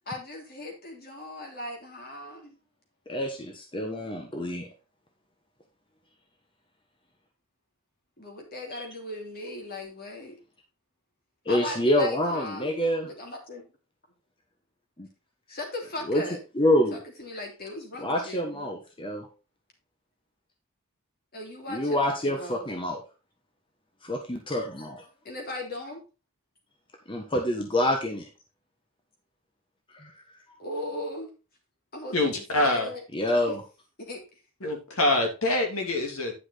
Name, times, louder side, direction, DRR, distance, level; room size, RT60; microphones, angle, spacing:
voice 1, 0.1-2.6 4.0-4.5 8.2-10.4 11.5-12.8 13.0-13.7 15.5-16.4 16.9-18.7 21.3-22.0 22.2-22.6 25.2-26.0 30.6-31.3 31.9-33.0 33.5-33.6 34.0-34.4, left 2 dB, 45° left, 1 dB, 3.1 m, -38 dB
voice 2, 3.1-4.7 8.7-8.8 11.4-13.1 15.0-15.1 16.1-16.2 16.5-17.0 18.0-19.3 21.7-23.0 24.0-25.0 27.1-28.3 29.9-30.1 30.5-30.6 33.1-33.6, left 1 dB, 25° left, 2 dB, 1.3 m, -27 dB
voice 3, 32.1-32.9 34.6-36.3, left 2 dB, 75° left, 2 dB, 2.7 m, -25 dB
10.0 x 5.9 x 4.1 m, 0.31 s
head